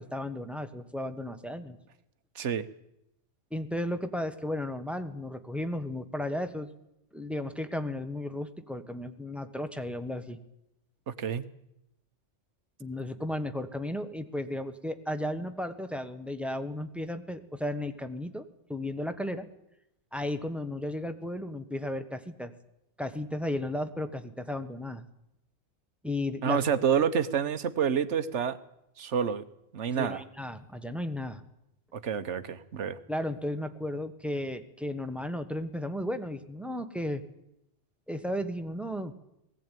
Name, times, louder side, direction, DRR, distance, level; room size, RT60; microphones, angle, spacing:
voice 1, 0.0-1.8 3.5-6.7 7.1-10.4 12.8-19.5 20.1-22.5 23.0-25.0 26.0-26.6 29.9-31.4 33.1-37.2 38.1-39.1, left 1 dB, ahead, 9 dB, 1.2 m, -34 dB
voice 2, 11.1-11.4 26.4-28.6 29.0-29.4 29.7-30.2 31.9-33.0, right 7 dB, 70° right, 12 dB, 1.3 m, -28 dB
19.0 x 16.0 x 9.2 m, 0.85 s
omnidirectional pair, 1.3 m